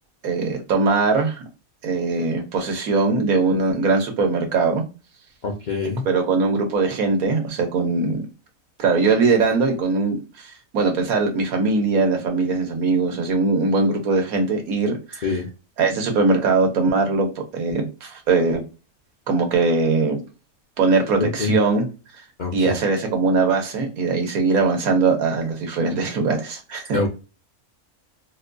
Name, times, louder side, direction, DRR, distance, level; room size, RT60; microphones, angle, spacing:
voice 1, 0.2-1.4 1.8-4.8 6.0-8.2 8.8-15.4 15.8-18.6 19.3-20.2 20.8-21.9 22.5-27.0, right 3 dB, 80° right, 1.3 m, -21 dB
voice 2, 5.4-6.0 15.2-15.4 21.2-21.5 22.4-22.5 26.9-27.1, left 3 dB, 60° left, 0.5 m, -24 dB
4.1 x 2.2 x 2.5 m
omnidirectional pair, 1.5 m